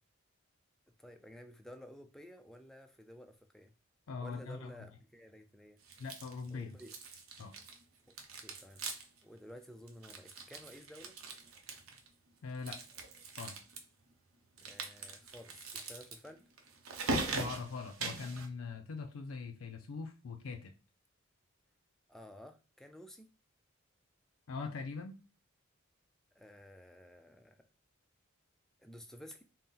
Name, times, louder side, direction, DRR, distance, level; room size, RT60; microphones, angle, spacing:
voice 1, 1.0-3.7 4.2-5.8 6.5-7.0 8.1-11.2 14.6-16.5 22.1-23.3 26.4-27.6 28.8-29.4, equal, ahead, 5 dB, 0.4 m, -53 dB
voice 2, 4.1-4.9 6.0-6.8 7.4-7.5 12.4-12.8 13.4-13.6 17.1-20.7 24.5-25.2, left 4 dB, 70° left, 5 dB, 0.4 m, -42 dB
sound 1, 5.9-6.5 6.8-7.8 8.1-9.2 9.5-9.6 9.9-12.1 12.5-13.8 14.6-18.5, right 3 dB, 80° right, 0.7 m, -41 dB
4.0 x 2.1 x 3.7 m, 0.32 s
head